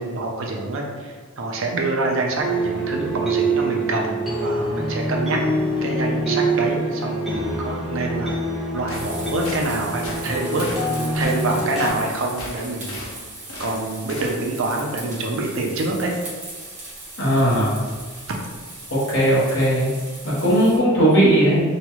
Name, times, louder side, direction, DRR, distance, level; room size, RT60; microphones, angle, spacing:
voice 1, 0.0-5.4 5.8-8.4 8.7-13.0 13.6-16.1, right 2 dB, 70° right, 0 dB, 0.5 m, -26 dB
sound 1, 2.4-11.9, right 1 dB, ahead, 0.6 m, -25 dB
sound 2, 8.9-9.1 9.4-9.6 10.0-10.2 10.6-10.8 11.2-11.4 11.8-12.0 12.4-13.1 13.5-13.7 14.1-14.3, left 2 dB, 85° left, 0.6 m, -35 dB
sound 3, 8.9-20.8, right 2 dB, 35° right, 0.9 m, -38 dB
voice 2, 17.2-17.8 18.9-19.9 20.2-21.6, right 1 dB, 60° left, -7 dB, 1.1 m, -18 dB
3.0 x 2.3 x 2.9 m, 1.4 s
head